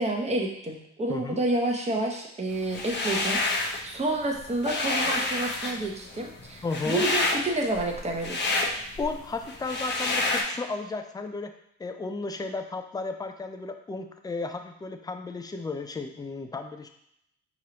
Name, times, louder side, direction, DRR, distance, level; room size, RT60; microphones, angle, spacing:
voice 1, 0.0-8.4, right 2 dB, 20° right, 0 dB, 0.8 m, -29 dB
voice 2, 1.1-1.4 6.6-7.1 9.0-11.5 11.8-16.9, left 3 dB, 15° left, 6 dB, 0.4 m, -34 dB
sound 1, 2.7-3.8 4.2-10.4, left 2 dB, 35° left, 0.8 m, -28 dB
4.6 x 3.0 x 2.9 m, 0.74 s
cardioid pair, 90°, 30 cm